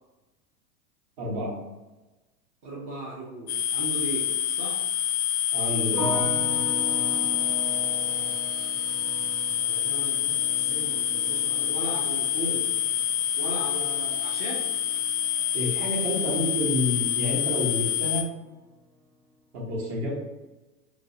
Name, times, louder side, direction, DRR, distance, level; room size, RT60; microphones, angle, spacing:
voice 1, 1.2-1.6 5.5-6.1 15.5-18.3 19.5-20.1, left 1 dB, 50° right, -3 dB, 1.1 m, -29 dB
voice 2, 2.6-4.8 7.0-7.5 8.0-8.2 9.6-12.7 13.4-14.7, right 1 dB, 20° right, -6 dB, 0.4 m, -37 dB
sound 1, 3.5-18.2, left 10 dB, 70° left, 0.6 m, -27 dB
sound 2, 5.9-17.0 17.3-18.0, equal, 80° right, 1.1 m, -39 dB
2.5 x 2.1 x 2.5 m, 1.1 s
figure-of-eight pair, 95°, 46 cm